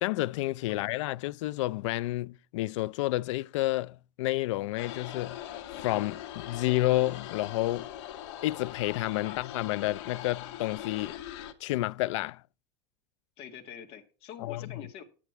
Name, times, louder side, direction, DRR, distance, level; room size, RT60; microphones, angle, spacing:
voice 1, 0.0-5.4 5.8-7.9 8.4-11.2 11.6-12.4 14.4-14.7, left 17 dB, 85° left, 0.4 m, -30 dB
sound 1, 4.8-11.5, left 11 dB, 65° left, 1.7 m, -41 dB
voice 2, 9.2-9.5 13.4-15.0, left 9 dB, 40° left, 2.1 m, -45 dB
9.9 x 8.8 x 4.4 m
supercardioid pair, 165°, 15 cm